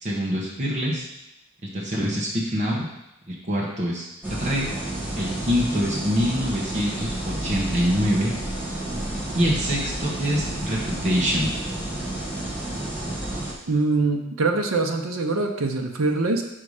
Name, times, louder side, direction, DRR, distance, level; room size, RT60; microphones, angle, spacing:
voice 1, 0.0-1.0 1.6-2.9 3.3-4.7 5.2-8.3 9.3-11.5, equal, 35° right, -5 dB, 1.2 m, -25 dB
sound 1, 4.2-13.5, right 1 dB, 10° right, 1.5 m, -31 dB
voice 2, 13.7-16.4, right 3 dB, 75° right, 3 dB, 0.7 m, -23 dB
5.7 x 5.4 x 4.9 m, 0.90 s
head